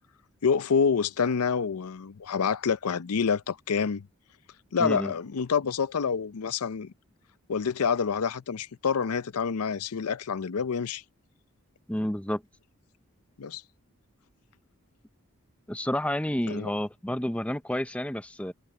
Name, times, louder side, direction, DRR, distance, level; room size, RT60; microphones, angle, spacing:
voice 1, 0.4-4.1 4.7-6.9 7.5-11.0 13.4-13.6 16.5-16.7, left 6 dB, 90° left, 0.6 m, -27 dB
voice 2, 4.8-5.1 11.9-12.4 15.7-18.5, left 1 dB, 5° left, 0.6 m, -30 dB
head